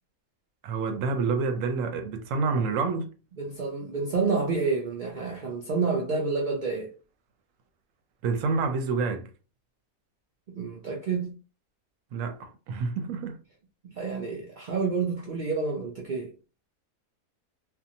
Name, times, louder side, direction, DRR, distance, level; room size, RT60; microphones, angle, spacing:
voice 1, 0.6-3.1 8.2-9.3 12.1-13.4, right 4 dB, 70° right, 0.9 m, -28 dB
voice 2, 3.4-6.9 10.5-11.4 13.8-16.3, right 4 dB, 90° right, 0.4 m, -29 dB
2.6 x 2.3 x 2.6 m
omnidirectional pair, 1.5 m